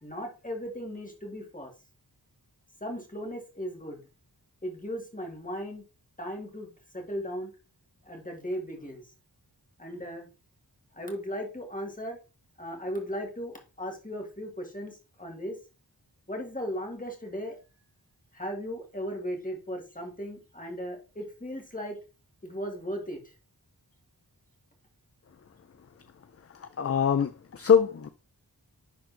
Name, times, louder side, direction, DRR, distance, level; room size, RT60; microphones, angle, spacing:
voice 1, 0.0-1.7 2.8-4.0 4.6-5.8 6.2-7.5 8.0-9.0 9.8-10.3 10.9-12.2 12.6-15.6 16.3-17.6 18.3-22.0 22.4-23.2, equal, 20° left, 1.8 m, -37 dB
voice 2, 26.6-28.1, left 7 dB, 35° left, 0.4 m, -23 dB
10.5 x 4.2 x 2.6 m
wide cardioid pair, 60°, 42 cm